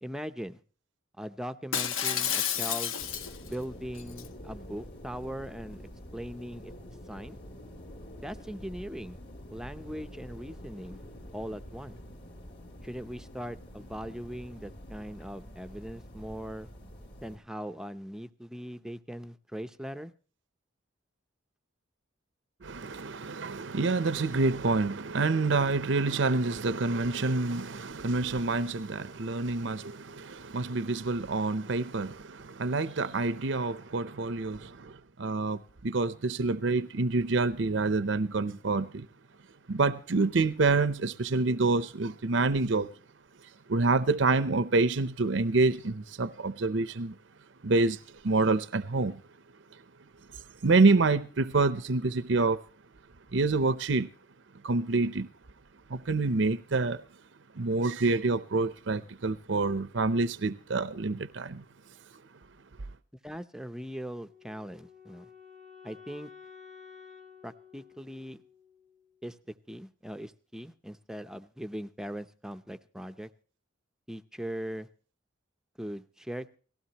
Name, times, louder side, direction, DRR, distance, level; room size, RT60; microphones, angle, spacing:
voice 1, 0.0-0.6 1.2-2.9 3.5-5.8 6.1-6.7 7.1-7.4 8.2-9.2 9.5-11.0 11.3-12.0 12.8-16.7 17.2-20.1 63.2-65.3 65.8-66.3 67.4-68.4 69.2-69.4 69.7-73.3 74.1-74.9 75.8-76.6, equal, 5° right, 0.6 m, -40 dB
Shatter, 1.7-3.5 4.0-4.3, left 8 dB, 85° left, 1.1 m, -30 dB
sound 1, 3.0-17.4, equal, 55° left, 2.9 m, -47 dB
voice 2, 22.6-39.1 39.7-42.9 43.7-47.1 47.6-49.2 50.6-52.6 53.3-54.1 54.6-55.3 55.9-57.0 57.6-61.6, right 3 dB, 65° right, 0.7 m, -27 dB
Wind instrument woodwind instrument, 64.2-69.3, left 6 dB, 35° left, 1.7 m, -52 dB
18.5 x 16.0 x 2.9 m
head